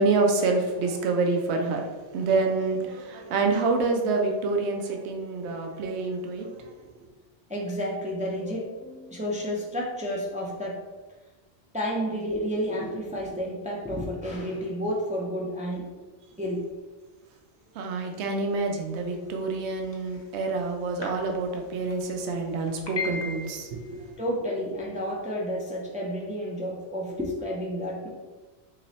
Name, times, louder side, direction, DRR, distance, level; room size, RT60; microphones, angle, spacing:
voice 1, 0.0-6.7 17.8-24.1, right 3 dB, 80° right, 3 dB, 0.9 m, -27 dB
voice 2, 7.5-10.8 11.7-16.0 16.4-16.6 24.2-28.1, equal, 15° right, -2 dB, 0.3 m, -31 dB
sound 1, 19.7-20.2 21.0-21.1 21.4-21.5 21.9-22.0 22.6-24.0, left 4 dB, 30° left, 0.7 m, -34 dB
3.0 x 3.0 x 4.0 m, 1.3 s
omnidirectional pair, 1.1 m